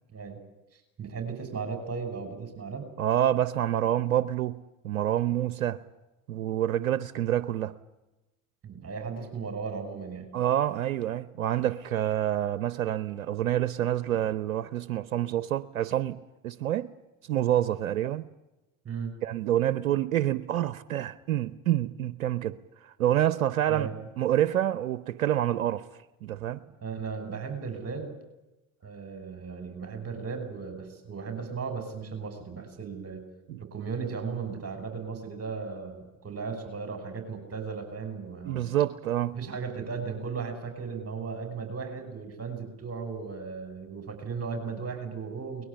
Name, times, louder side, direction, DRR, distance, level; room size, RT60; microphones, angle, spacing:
voice 1, 0.7-2.8 8.6-10.3 18.8-19.1 23.7-23.9 26.8-28.1 28.8-33.3 33.6-38.6 39.3-45.6, right 5 dB, 35° right, 6.1 m, -36 dB
voice 2, 3.0-4.6 4.8-5.8 6.3-7.7 10.3-16.2 16.4-16.9 17.3-18.2 19.2-22.6 22.8-23.9 24.2-25.8 26.2-26.6 33.5-33.6 38.5-39.3, right 12 dB, 85° right, 0.8 m, -27 dB
22.5 x 20.5 x 10.0 m
hypercardioid pair, 70°, 41 cm